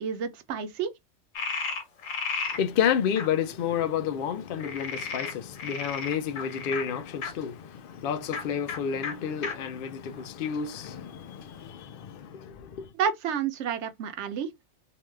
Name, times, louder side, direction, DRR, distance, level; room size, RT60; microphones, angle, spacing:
voice 1, 0.0-0.9 13.0-14.5, right 7 dB, 70° right, 0.9 m, -30 dB
Frog, 1.3-2.6 3.2-3.3 4.6-7.3 8.2-8.4 8.7-8.8 9.0-9.1 9.4-9.5 10.1-10.9, left 5 dB, 90° left, 1.3 m, -33 dB
voice 2, 2.5-12.9, left 8 dB, 55° left, 0.6 m, -30 dB
2.9 x 2.3 x 3.2 m
omnidirectional pair, 1.3 m